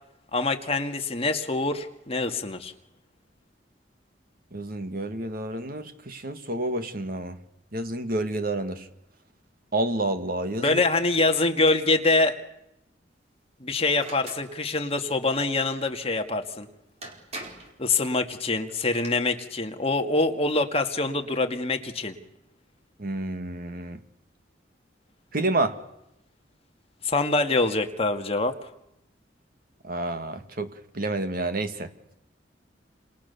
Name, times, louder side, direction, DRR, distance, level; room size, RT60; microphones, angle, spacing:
voice 1, 0.3-2.7 10.6-12.4 13.6-16.7 17.8-22.1 27.0-28.5, left 3 dB, 35° left, 2.0 m, -25 dB
voice 2, 4.5-7.4 7.7-8.8 9.7-10.8 23.0-24.0 25.3-25.8 29.8-31.9, right 2 dB, 55° right, 2.0 m, -29 dB
sound 1, 14.0-14.5 16.5-16.6 17.0-17.8 18.7-19.1, right 2 dB, 35° right, 4.9 m, -40 dB
29.5 x 28.0 x 7.0 m
head